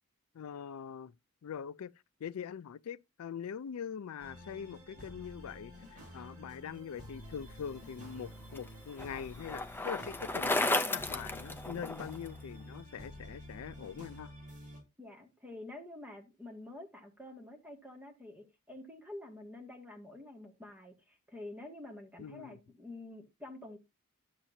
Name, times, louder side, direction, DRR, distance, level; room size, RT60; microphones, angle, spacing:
voice 1, 0.3-1.1 1.4-1.9 2.2-14.3 22.2-22.6, left 7 dB, 85° left, 0.4 m, -43 dB
sound 1, 4.2-14.8, equal, 35° right, 6.3 m, -50 dB
Bicycle, 7.9-12.3, left 2 dB, 10° left, 0.5 m, -34 dB
voice 2, 15.0-23.8, left 2 dB, 5° right, 2.0 m, -48 dB
12.0 x 7.4 x 2.7 m
head